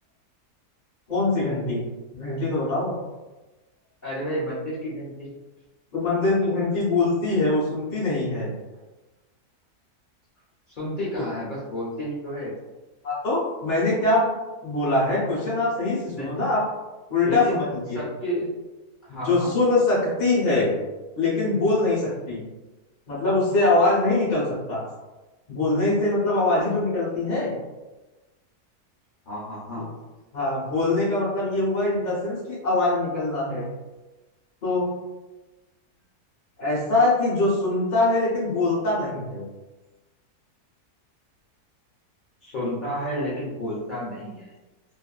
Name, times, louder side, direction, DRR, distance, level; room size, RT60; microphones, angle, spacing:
voice 1, 1.1-1.8 2.1-2.9 5.9-8.5 13.0-14.3 14.6-16.6 17.1-17.6 17.9-18.0 19.1-20.7 21.1-22.4 23.1-24.8 25.5-27.5 30.3-33.6 34.6-35.0 36.6-39.4, left 2 dB, 40° left, -7 dB, 0.7 m, -23 dB
voice 2, 4.0-5.3 10.8-12.5 16.1-16.4 17.2-17.6 17.9-18.5 19.0-19.5 29.3-29.9 42.4-44.5, equal, 80° left, -8 dB, 0.4 m, -31 dB
2.5 x 2.5 x 2.2 m, 1.1 s
omnidirectional pair, 1.7 m